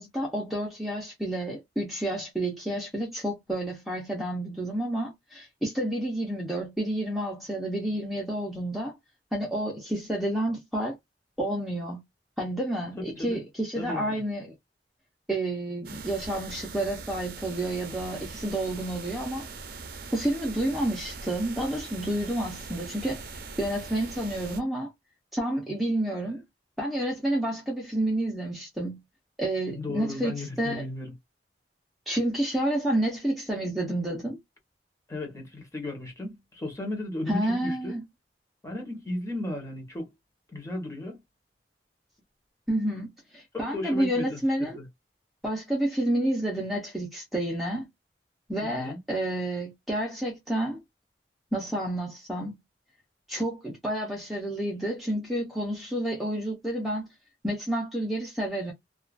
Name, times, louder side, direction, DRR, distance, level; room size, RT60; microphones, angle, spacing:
voice 1, 0.0-8.9 9.3-11.0 11.4-12.0 12.4-14.5 15.3-19.5 20.1-24.9 25.3-26.4 26.8-29.0 29.4-30.8 32.1-34.4 37.3-38.0 42.7-44.8 45.4-47.9 48.5-50.8 51.5-52.6 53.3-57.1 57.4-58.7, right 1 dB, ahead, 0.7 m, -30 dB
voice 2, 13.0-13.4 13.8-14.2 29.7-31.1 35.1-38.0 38.6-40.1 40.5-41.2 43.7-44.9 48.6-49.0, left 1 dB, 15° left, 1.0 m, -35 dB
sound 1, 15.8-24.6, right 4 dB, 55° right, 0.6 m, -41 dB
2.4 x 2.3 x 2.3 m
head